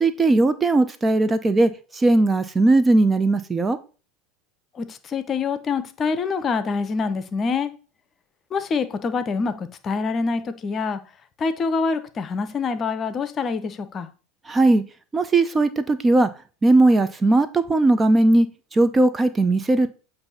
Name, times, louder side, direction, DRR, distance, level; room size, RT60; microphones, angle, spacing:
voice 1, 0.0-1.7 2.0-3.8 14.5-14.8 15.1-16.3 16.6-18.5 18.8-19.9, right 2 dB, 20° right, 0.6 m, -18 dB
voice 2, 4.7-7.7 8.5-11.0 11.4-14.1, left 4 dB, 35° left, 0.8 m, -25 dB
7.9 x 2.7 x 5.5 m
hypercardioid pair, 90°, 0 cm